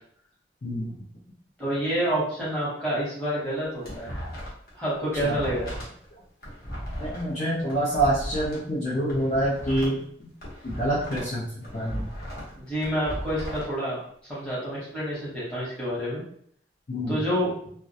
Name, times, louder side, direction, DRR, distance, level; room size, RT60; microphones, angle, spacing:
voice 1, 0.6-0.9 5.2-5.4 7.0-10.0 10.6-11.4 11.7-12.1 16.9-17.2, right 1 dB, 40° left, -8 dB, 0.5 m, -26 dB
voice 2, 1.6-4.3 4.7-5.7 12.5-14.0 14.3-16.2 17.1-17.5, equal, 5° left, -9 dB, 0.8 m, -28 dB
sound 1, 3.5-4.7 5.0-8.6 9.0-11.3 11.6-13.7, equal, 55° left, 0.9 m, -36 dB
2.3 x 2.1 x 2.7 m, 0.63 s
head